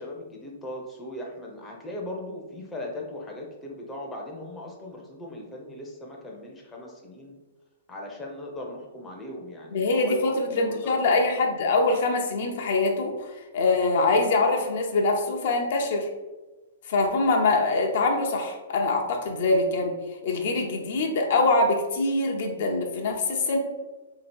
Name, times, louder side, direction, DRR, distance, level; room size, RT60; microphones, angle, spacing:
voice 1, 0.0-7.4 7.9-11.2, left 1 dB, 10° left, -1 dB, 0.6 m, -38 dB
voice 2, 9.7-13.3 13.5-16.1 16.9-19.9 20.2-23.6, left 3 dB, 60° left, 2 dB, 0.6 m, -24 dB
2.9 x 2.7 x 4.3 m, 1.2 s
hypercardioid pair, 145°, 0 cm